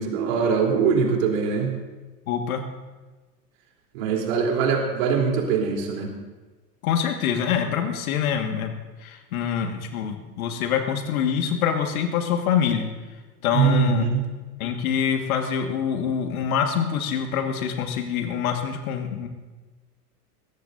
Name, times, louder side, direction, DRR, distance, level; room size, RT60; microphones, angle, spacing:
voice 1, 0.0-1.8 3.9-6.1 13.5-14.3, right 6 dB, 55° right, 1 dB, 3.6 m, -22 dB
voice 2, 2.3-2.6 6.8-8.7 9.0-12.9 13.4-14.0 14.6-19.3, left 8 dB, 60° left, 5 dB, 1.8 m, -25 dB
22.0 x 16.5 x 2.7 m, 1.2 s
figure-of-eight pair, 90°, 48 cm